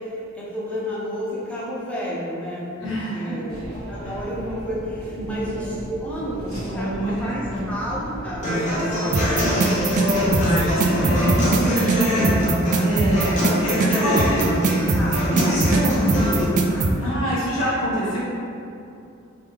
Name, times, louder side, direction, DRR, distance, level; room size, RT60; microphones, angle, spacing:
voice 1, 0.0-3.6 3.9-10.4 13.4-13.6 13.9-17.2, equal, 5° left, -7 dB, 0.8 m, -31 dB
voice 2, 2.8-3.5 5.1-5.5 6.7-7.7 10.1-14.4 15.3-16.1 17.0-18.2, equal, 70° left, -8 dB, 1.4 m, -26 dB
sound 1, 3.5-11.1, equal, 85° right, 0.8 m, -35 dB
Human voice / Acoustic guitar, 8.4-16.4, equal, 40° left, 0.8 m, -24 dB
sound 2, 9.1-16.9, right 3 dB, 40° right, 0.3 m, -21 dB
3.3 x 3.3 x 3.5 m, 2.5 s
head